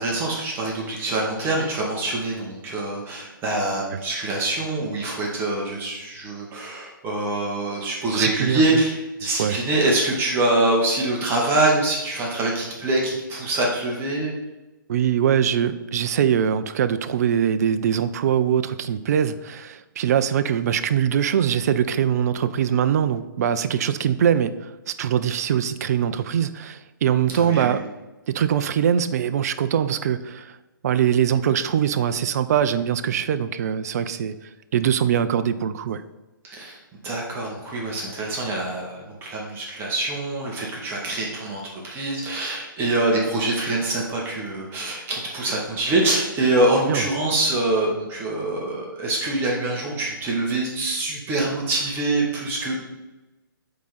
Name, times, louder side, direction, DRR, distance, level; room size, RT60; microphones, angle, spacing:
voice 1, 0.0-14.3 27.3-27.8 36.4-36.8 37.0-52.8, right 2 dB, 20° right, -2 dB, 1.6 m, -24 dB
voice 2, 8.1-8.6 9.4-9.6 14.9-27.9 28.3-30.6 30.8-36.0 46.9-47.0, right 9 dB, 45° right, 12 dB, 0.5 m, -22 dB
8.3 x 3.8 x 5.8 m, 1.0 s
hypercardioid pair, 140°, 12 cm